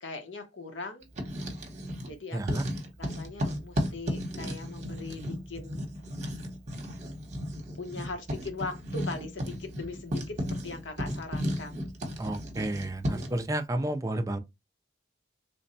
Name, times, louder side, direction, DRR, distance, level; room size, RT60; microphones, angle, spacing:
voice 1, 0.0-1.1 2.0-2.6 3.0-5.8 7.8-11.8, left 3 dB, 85° left, 1.0 m, -40 dB
Writing, 1.0-2.1 2.4-13.4, equal, 40° right, 0.9 m, -34 dB
voice 2, 2.3-2.7 12.2-14.4, right 1 dB, 15° right, 0.4 m, -31 dB
3.3 x 2.1 x 4.0 m
head